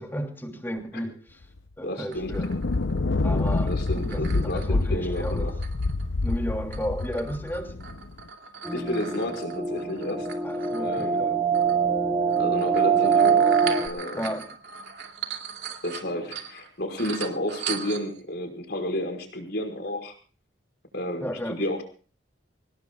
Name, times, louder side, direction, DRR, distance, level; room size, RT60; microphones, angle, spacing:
voice 1, 0.0-1.4 1.8-2.5 3.2-4.2 4.5-5.5 6.2-7.8 10.4-11.4 14.2-14.5 21.2-21.5, equal, 10° left, 2.9 m, -33 dB
sound 1, 1.6-1.7 2.2-8.2, left 3 dB, 75° left, 0.7 m, -27 dB
voice 2, 1.8-2.3 3.7-5.5 8.7-10.3 10.8-11.2 12.4-13.5 13.8-14.4 15.8-20.1 20.9-21.8, left 1 dB, 60° left, 5.3 m, -31 dB
sound 2, 2.1-6.4 6.7-11.1 11.5-11.8 12.3-16.7 17.0-18.2, right 7 dB, 60° right, 2.7 m, -39 dB
sound 3, 8.6-13.9, right 6 dB, 10° right, 2.3 m, -23 dB
26.0 x 19.0 x 2.4 m
head